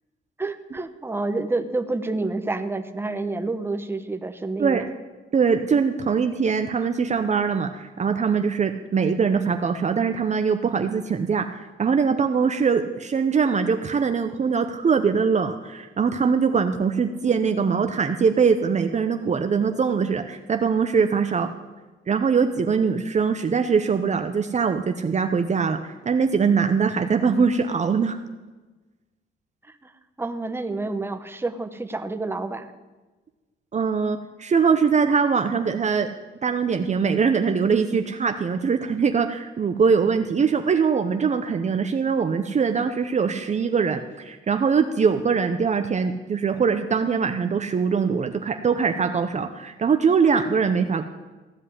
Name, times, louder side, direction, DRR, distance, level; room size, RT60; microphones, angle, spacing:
voice 1, 0.4-4.8 29.7-29.9 30.2-32.7, right 3 dB, 10° right, 8 dB, 1.0 m, -29 dB
voice 2, 5.3-21.5 22.1-28.2 33.7-36.1 36.4-51.0, right 5 dB, 35° right, 7 dB, 0.8 m, -22 dB
15.5 x 5.4 x 9.7 m, 1.2 s
cardioid pair, 90°, 20 cm